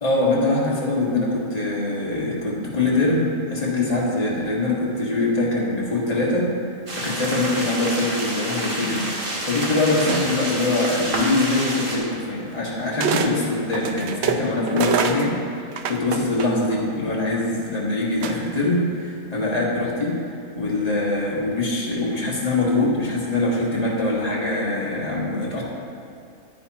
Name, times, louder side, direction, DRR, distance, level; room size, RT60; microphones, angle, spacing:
voice 1, 0.0-6.5 6.9-9.1 9.4-20.2 20.6-25.6, left 2 dB, 30° left, -5 dB, 1.8 m, -23 dB
sound 1, 6.9-12.0, right 1 dB, 40° right, 1.4 m, -28 dB
sound 2, 10.1-10.6 11.7-11.8 13.0-13.3 13.7-16.8 18.2-18.7, right 7 dB, 65° right, 0.8 m, -26 dB
10.0 x 9.5 x 3.0 m, 2.5 s
omnidirectional pair, 1.4 m